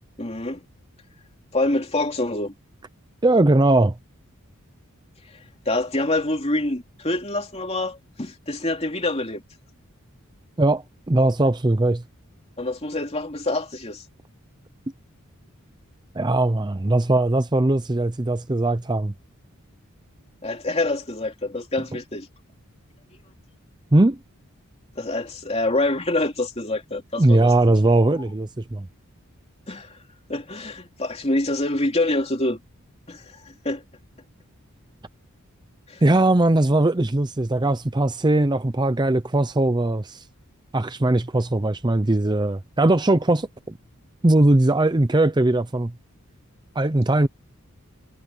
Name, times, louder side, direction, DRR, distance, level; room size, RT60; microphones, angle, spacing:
voice 1, 0.2-0.6 1.5-2.5 5.6-9.4 12.6-14.0 20.4-22.3 25.0-27.5 29.7-30.0 30.3-32.6 33.1-33.8 35.9-36.0, left 2 dB, 30° left, 2.9 m, -26 dB
voice 2, 3.2-4.0 10.6-12.0 16.1-19.1 23.9-24.2 27.2-28.9 36.0-40.2 40.7-43.5 44.2-45.9 46.8-47.3, right 2 dB, 20° right, 0.6 m, -20 dB
head